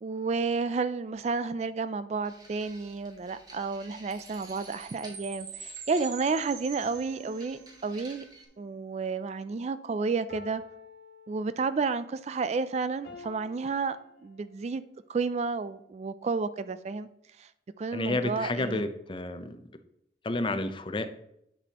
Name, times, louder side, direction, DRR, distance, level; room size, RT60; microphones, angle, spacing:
voice 1, 0.0-8.2 8.6-10.6 11.3-14.0 14.2-14.8 15.1-17.1 17.4-17.5 17.8-18.8, right 4 dB, 40° right, 0.3 m, -31 dB
sound 1, 2.2-8.4, right 2 dB, 20° right, 1.4 m, -53 dB
Chime, 4.1-7.8, right 6 dB, 70° right, 1.3 m, -45 dB
sound 2, 6.9-8.8 10.3-11.9 13.0-14.8, left 2 dB, 65° left, 1.7 m, -51 dB
voice 2, 17.9-19.6 20.2-21.1, left 2 dB, 30° left, 0.5 m, -30 dB
10.0 x 6.0 x 2.9 m
head